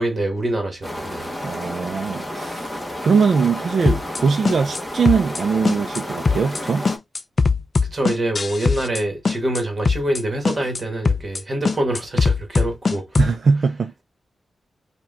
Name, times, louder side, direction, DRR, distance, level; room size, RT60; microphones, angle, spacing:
voice 1, 0.0-1.4 7.9-13.2, right 1 dB, 25° right, 1.4 m, -25 dB
sound 1, 0.8-7.0, left 1 dB, 10° left, 0.9 m, -31 dB
voice 2, 1.4-6.9 13.2-13.9, right 5 dB, 55° right, 0.4 m, -21 dB
sound 2, 3.9-4.2 4.5-4.8 5.1-5.4 5.7-6.0 6.3-6.6 6.9-9.0 9.3-9.6 9.9-10.2 10.5-10.8 11.1-11.4 11.7-13.4, left 4 dB, 35° left, 0.3 m, -20 dB
4.7 x 2.3 x 3.5 m
wide cardioid pair, 175°, 0 cm